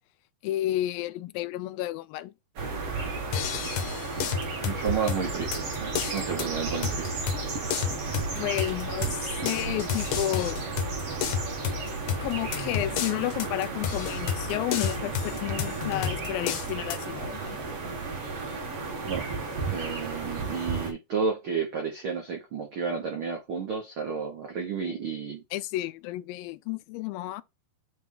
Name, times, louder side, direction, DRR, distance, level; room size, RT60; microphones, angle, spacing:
voice 1, 0.4-2.3 8.4-10.6 12.2-17.6 25.5-27.4, left 15 dB, 85° left, 2.3 m, -31 dB
sound 1, 2.6-20.9, right 4 dB, 45° right, 2.3 m, -33 dB
sound 2, 3.3-17.1, left 8 dB, 70° left, 1.7 m, -33 dB
voice 2, 4.6-7.2 19.0-19.3 19.7-25.4, right 5 dB, 90° right, 1.1 m, -32 dB
8.9 x 3.1 x 3.8 m
omnidirectional pair, 4.1 m